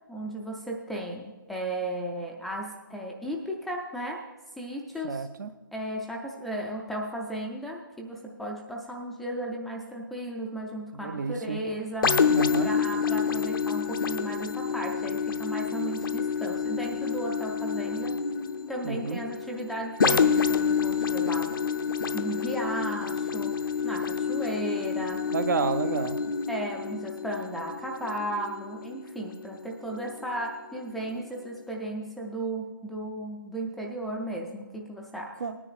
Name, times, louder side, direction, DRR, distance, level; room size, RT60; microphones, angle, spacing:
voice 1, 0.1-4.2 4.6-5.3 5.7-12.1 12.6-18.2 18.7-21.5 22.1-25.2 26.5-35.4, right 1 dB, ahead, -2 dB, 0.4 m, -35 dB
voice 2, 5.0-5.5 10.9-11.6 12.3-12.7 18.8-19.2 25.3-26.2 35.4-35.6, right 5 dB, 55° right, 12 dB, 0.6 m, -30 dB
sound 1, 12.0-29.6 30.1-30.2, left 6 dB, 70° left, 0.6 m, -28 dB
19.0 x 9.8 x 2.4 m, 1.2 s
figure-of-eight pair, 155°, 12 cm